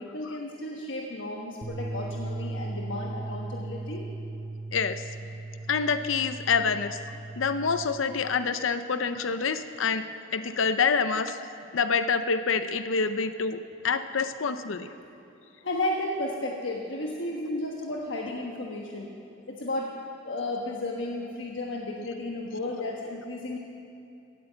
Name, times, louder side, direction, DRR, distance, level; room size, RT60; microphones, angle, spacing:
voice 1, 0.0-4.1 15.6-19.1 19.5-19.9 20.2-23.6, left 1 dB, 70° left, -1 dB, 1.3 m, -33 dB
sound 1, 1.6-7.9, right 2 dB, 40° right, 1.6 m, -37 dB
voice 2, 4.7-5.0 5.7-7.0 7.4-10.0 10.3-11.4 11.7-13.6 13.8-14.9, left 5 dB, 90° left, 10 dB, 0.6 m, -26 dB
16.5 x 10.0 x 7.9 m, 2.6 s
head